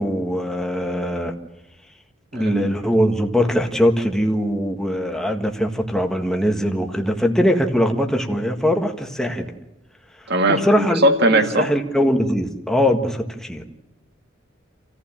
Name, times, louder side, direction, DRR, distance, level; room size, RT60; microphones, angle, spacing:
voice 1, 0.0-1.3 2.3-9.5 10.5-11.1 11.3-13.6, equal, 5° left, 3 dB, 1.6 m, -21 dB
voice 2, 2.3-2.7 10.3-11.7, right 1 dB, 60° right, 6 dB, 1.9 m, -19 dB
28.5 x 15.0 x 7.4 m, 0.97 s
head